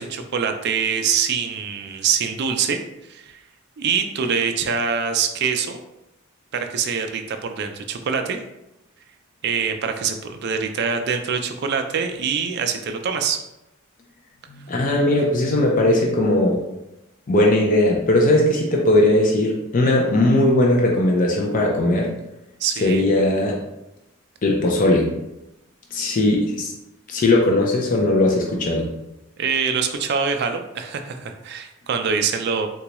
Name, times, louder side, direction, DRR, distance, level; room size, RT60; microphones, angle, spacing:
voice 1, 0.0-2.8 3.1-3.4 3.8-5.8 6.5-8.4 9.4-13.4 22.6-23.0 29.4-32.7, right 6 dB, 50° right, 6 dB, 0.3 m, -24 dB
voice 2, 14.5-16.6 17.3-22.1 22.8-23.6 24.4-25.1 25.9-26.7 27.1-28.9, left 1 dB, 40° left, 0 dB, 0.4 m, -18 dB
3.8 x 2.3 x 2.9 m, 0.90 s
head